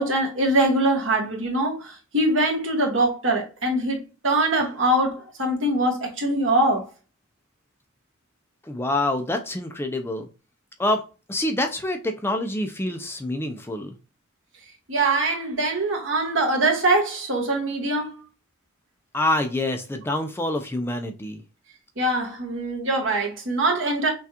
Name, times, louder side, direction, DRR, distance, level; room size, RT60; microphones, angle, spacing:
voice 1, 0.0-4.0 4.2-6.8 14.9-18.2 22.0-24.1, right 1 dB, 65° right, 1.5 m, -23 dB
voice 2, 8.6-10.3 10.8-13.9 19.1-21.4, left 1 dB, 10° left, 0.4 m, -26 dB
5.7 x 2.3 x 2.8 m
head